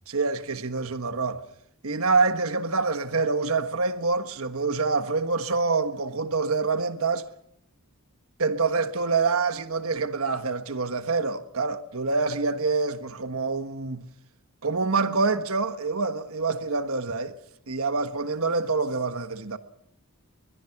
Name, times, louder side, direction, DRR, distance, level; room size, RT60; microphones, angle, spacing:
voice 1, 0.1-1.4 1.8-7.3 8.4-14.1 14.6-17.3 17.7-19.6, right 4 dB, 75° right, 1.4 m, -26 dB
22.0 x 22.0 x 5.9 m
head